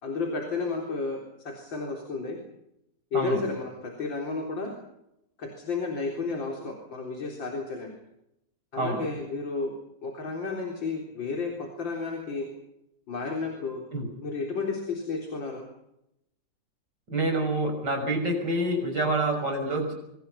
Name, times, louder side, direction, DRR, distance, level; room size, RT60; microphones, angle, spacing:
voice 1, 0.0-2.4 3.1-4.7 5.4-7.9 8.7-9.7 10.0-12.5 13.1-13.8 14.2-15.6, left 4 dB, 75° left, 1 dB, 4.6 m, -32 dB
voice 2, 3.1-3.5 8.7-9.0 13.9-14.1 17.1-20.0, right 1 dB, 60° right, 4 dB, 7.1 m, -27 dB
26.5 x 25.0 x 5.8 m, 0.84 s
omnidirectional pair, 2.1 m